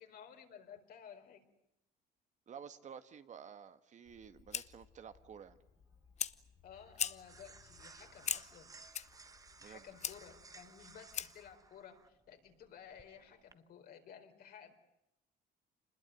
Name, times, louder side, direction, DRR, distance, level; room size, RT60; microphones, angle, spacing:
voice 1, 0.0-1.5 6.6-8.7 9.6-14.7, left 8 dB, 65° left, 5 dB, 4.4 m, -55 dB
voice 2, 2.5-5.6 9.6-9.8, right 7 dB, 45° right, 10 dB, 1.7 m, -52 dB
Fire, 4.1-11.5, left 8 dB, 40° left, 1.0 m, -43 dB
sound 1, 5.1-13.5, right 4 dB, 20° right, 1.1 m, -60 dB
27.0 x 21.0 x 9.2 m, 0.83 s
cardioid pair, 110°, 17 cm